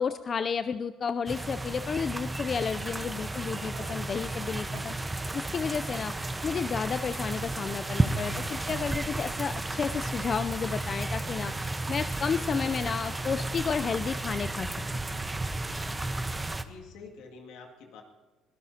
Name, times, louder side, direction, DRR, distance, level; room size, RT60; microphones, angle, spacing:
voice 1, 0.0-6.1 6.4-14.7, left 6 dB, 45° left, 11 dB, 0.4 m, -32 dB
sound 1, 1.3-16.6, right 2 dB, 15° right, 1.0 m, -33 dB
sound 2, 3.2-5.3 7.2-9.4 12.2-13.8 14.0-14.2, right 7 dB, 90° right, 1.2 m, -50 dB
voice 2, 16.5-18.0, left 4 dB, 80° left, 1 dB, 2.2 m, -47 dB
23.5 x 17.0 x 2.8 m, 1.3 s
supercardioid pair, 85°, 0 cm